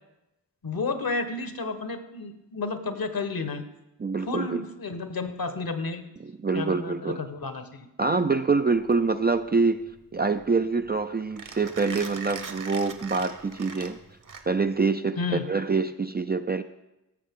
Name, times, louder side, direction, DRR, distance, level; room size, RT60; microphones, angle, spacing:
voice 1, 0.6-3.6 4.3-6.0 6.5-7.9 15.2-15.5, left 3 dB, 55° left, 9 dB, 1.1 m, -31 dB
voice 2, 4.0-4.6 6.2-7.2 8.0-9.8 10.1-14.0 14.5-16.6, right 4 dB, 25° right, 8 dB, 0.4 m, -25 dB
Mechanisms, 8.7-14.8, right 5 dB, 45° right, 1.1 m, -41 dB
16.5 x 6.7 x 3.6 m, 0.93 s
cardioid pair, 60°, 42 cm